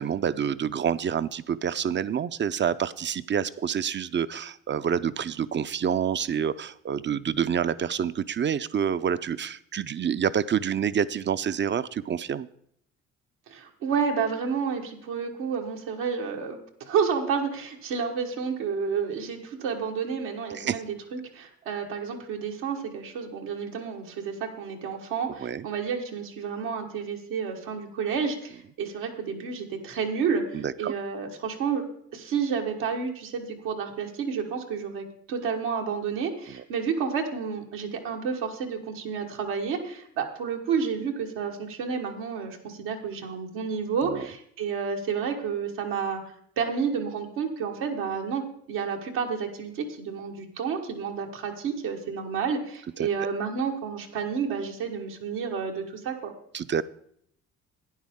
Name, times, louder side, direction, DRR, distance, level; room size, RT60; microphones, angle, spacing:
voice 1, 0.0-12.5 20.5-20.8 25.4-25.7 30.5-30.9 36.5-36.6 44.0-44.3 53.0-53.1 56.5-56.8, right 8 dB, 35° right, 16 dB, 0.5 m, -28 dB
voice 2, 13.5-31.8 32.1-46.2 46.6-56.3, right 6 dB, 85° right, 1 dB, 1.5 m, -30 dB
11.5 x 9.6 x 3.6 m, 0.69 s
supercardioid pair, 60°, 33 cm